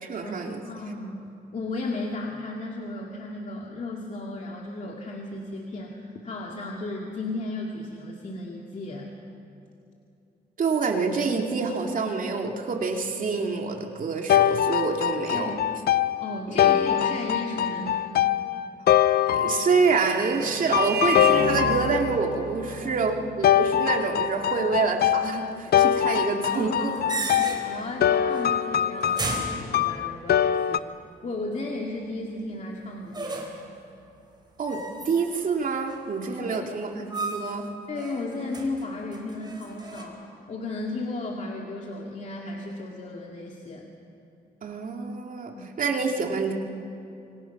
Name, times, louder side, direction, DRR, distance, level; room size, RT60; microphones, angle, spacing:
voice 1, 0.0-0.6 10.6-15.5 16.5-16.7 19.3-26.9 34.6-37.7 44.6-46.5, right 4 dB, 55° right, 2 dB, 2.5 m, -27 dB
voice 2, 0.6-1.2 1.5-9.1 15.3-15.6 16.2-18.0 22.6-23.1 26.5-30.8 31.2-33.5 36.4-36.7 37.9-43.9 45.6-45.7, left 2 dB, 45° left, -1 dB, 2.3 m, -35 dB
sound 1, 14.3-20.1 20.7-22.4 23.4-30.8, left 10 dB, 70° left, 0.6 m, -23 dB
Vehicle horn car horn honking, 19.2-28.2, right 9 dB, 75° right, 0.8 m, -36 dB
sound 2, 26.5-27.9 28.3-28.7 29.0-30.3 33.1-33.7 34.7-35.5 35.9-36.5 37.1-37.6 37.9-40.0, right 3 dB, 25° right, 4.1 m, -35 dB
26.5 x 23.0 x 6.0 m, 2.7 s
cardioid pair, 95°, 17 cm